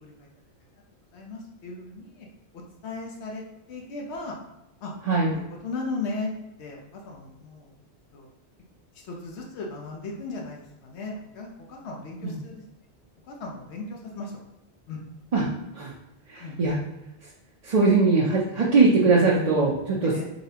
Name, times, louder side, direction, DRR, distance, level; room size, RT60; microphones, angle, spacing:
voice 1, 1.1-2.3 2.5-3.4 3.7-4.4 4.8-4.9 5.3-6.3 6.6-7.7 8.1-8.3 8.9-12.6 13.3-14.3 14.9-15.0 16.3-16.6 20.1-20.3, left 3 dB, 90° left, -1 dB, 1.0 m, -36 dB
voice 2, 16.3-16.8 17.6-20.1, right 3 dB, 45° right, -5 dB, 0.6 m, -21 dB
4.1 x 3.2 x 2.8 m, 0.92 s
omnidirectional pair, 1.1 m